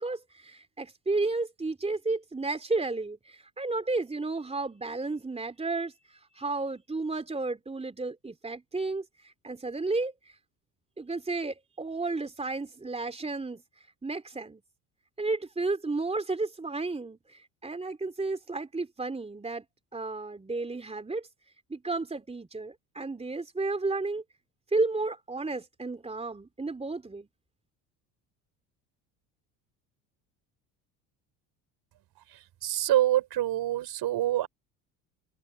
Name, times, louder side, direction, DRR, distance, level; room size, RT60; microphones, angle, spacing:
voice 1, 0.0-10.4 11.0-13.6 14.0-14.6 15.2-19.6 19.9-21.3 21.7-24.2 24.7-27.3, right 3 dB, 15° right, 3.6 m, -32 dB
voice 2, 32.6-34.5, right 13 dB, 55° right, 5.6 m, -26 dB
supercardioid pair, 85°, 44 cm